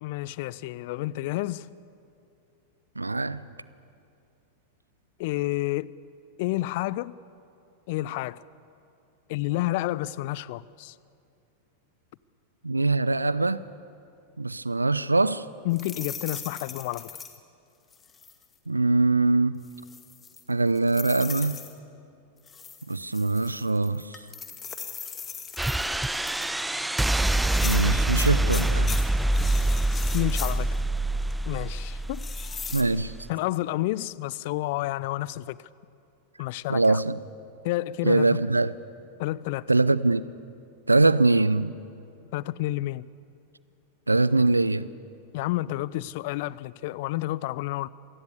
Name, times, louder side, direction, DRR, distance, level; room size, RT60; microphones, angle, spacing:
voice 1, 0.0-1.7 5.2-5.9 6.4-7.2 7.9-8.4 9.3-10.9 15.6-17.2 30.1-30.8 31.5-32.2 33.3-35.6 36.4-37.0 37.6-38.4 39.2-39.7 42.3-43.1 45.3-47.9, left 17 dB, 50° left, 0.6 m, -30 dB
voice 2, 3.0-3.4 12.6-13.6 14.4-15.4 18.7-19.6 20.5-21.6 22.9-24.0 27.6-28.9 32.7-33.1 36.7-37.2 38.0-38.7 39.7-40.2 40.9-41.7 44.1-44.9, right 3 dB, 80° right, 0.6 m, -22 dB
sound 1, 15.7-17.4 17.9-18.4 19.6-21.7 22.5-26.6 27.3-30.8 31.2-31.3 32.1-32.8, left 6 dB, 20° left, 2.1 m, -39 dB
sound 2, 25.6-33.3, right 1 dB, 5° right, 0.5 m, -26 dB
26.5 x 19.0 x 8.3 m
figure-of-eight pair, 90°, 0 cm